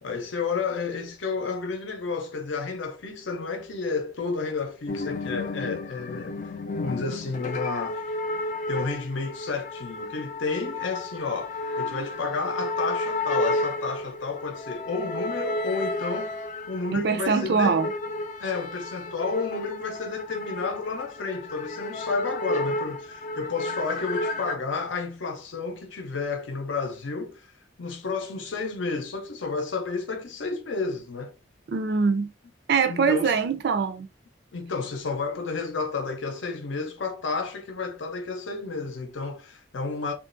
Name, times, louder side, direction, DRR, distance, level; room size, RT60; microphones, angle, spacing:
voice 1, 0.0-6.5 6.8-8.0 8.7-16.4 16.7-17.8 18.4-27.5 27.8-31.3 32.9-33.4 34.5-40.1, left 4 dB, 85° left, 0.6 m, -31 dB
sound 1, 4.9-24.6, left 2 dB, 40° left, 0.3 m, -32 dB
voice 2, 16.9-17.9 31.7-32.3 32.7-34.1, right 5 dB, 60° right, 0.4 m, -23 dB
3.1 x 2.4 x 2.5 m
head